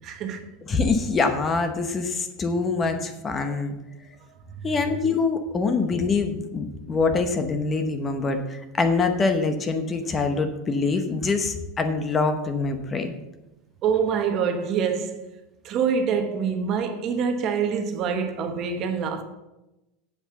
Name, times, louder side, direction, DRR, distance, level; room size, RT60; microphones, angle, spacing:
voice 1, 0.0-0.5 3.5-3.6 4.6-4.7 13.8-15.2 15.6-19.2, right 6 dB, 40° right, 1.1 m, -25 dB
voice 2, 0.7-3.8 4.6-13.1, left 4 dB, 20° left, 1.0 m, -24 dB
7.9 x 7.8 x 6.8 m
supercardioid pair, 155°, 0 cm